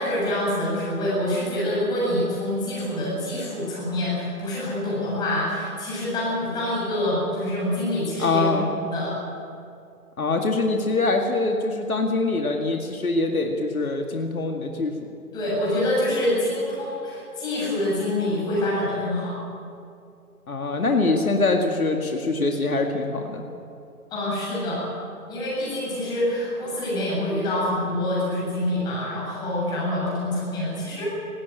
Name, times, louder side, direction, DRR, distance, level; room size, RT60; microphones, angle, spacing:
voice 1, 0.0-8.5 8.8-9.1 15.3-19.3 24.1-24.8 25.3-31.1, left 1 dB, 10° left, -7 dB, 7.5 m, -26 dB
voice 2, 8.2-8.7 10.2-15.1 20.5-23.4, left 3 dB, 65° left, 3 dB, 2.2 m, -24 dB
19.0 x 18.5 x 8.8 m, 2.5 s
figure-of-eight pair, 155°, 46 cm